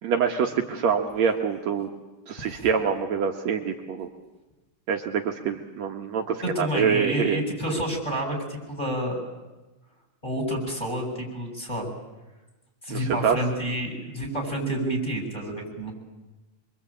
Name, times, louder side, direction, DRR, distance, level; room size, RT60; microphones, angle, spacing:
voice 1, 0.0-1.9 2.3-4.1 4.9-7.4 12.9-13.4, right 7 dB, 65° right, 3 dB, 2.5 m, -25 dB
voice 2, 2.4-2.7 6.4-9.2 10.2-11.9 12.8-15.9, right 1 dB, 15° left, 1 dB, 7.7 m, -29 dB
27.5 x 23.5 x 8.8 m, 1.1 s
omnidirectional pair, 3.5 m